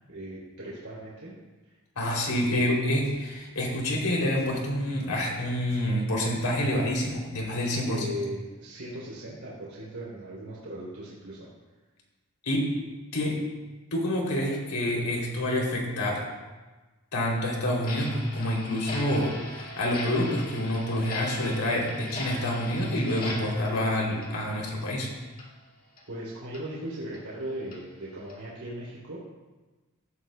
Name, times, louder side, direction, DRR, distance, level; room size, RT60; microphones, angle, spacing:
voice 1, 0.1-1.3 1.6-1.8 2.4-2.7 7.8-11.5 26.1-29.2, equal, 75° right, -7 dB, 3.2 m, -38 dB
voice 2, 2.0-8.0 12.4-12.8 13.1-13.4 13.9-16.2 17.1-25.1, left 1 dB, 90° left, -1 dB, 3.0 m, -27 dB
Drum, 2.4-2.5 3.0-3.3 3.7-3.8 4.4-4.6 5.0-5.2 5.7-6.0 6.4-6.5 7.0-7.6, right 1 dB, 50° right, 4.1 m, -52 dB
Clock, 17.8-25.0 25.3-25.5 26.0-26.1 26.5-26.6 27.1-27.2 27.7-27.8 28.3-28.5, left 2 dB, 40° left, 1.9 m, -39 dB
16.0 x 11.5 x 2.2 m, 1.2 s
head